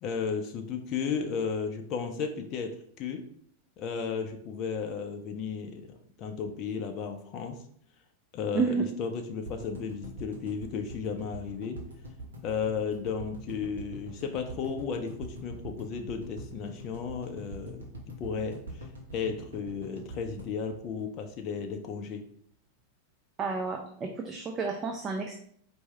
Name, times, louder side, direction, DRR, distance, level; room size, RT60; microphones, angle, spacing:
voice 1, 0.0-3.3 3.8-7.6 8.3-11.8 12.4-17.9 18.2-22.2, left 6 dB, 35° left, 4 dB, 0.5 m, -34 dB
voice 2, 8.5-8.9 23.4-25.3, right 5 dB, 25° right, 3 dB, 0.4 m, -30 dB
sound 1, 9.4-21.6 21.9-22.0 22.2-22.3, right 1 dB, 70° right, 1.0 m, -43 dB
4.6 x 2.6 x 3.2 m, 0.63 s
figure-of-eight pair, 90°, 0 cm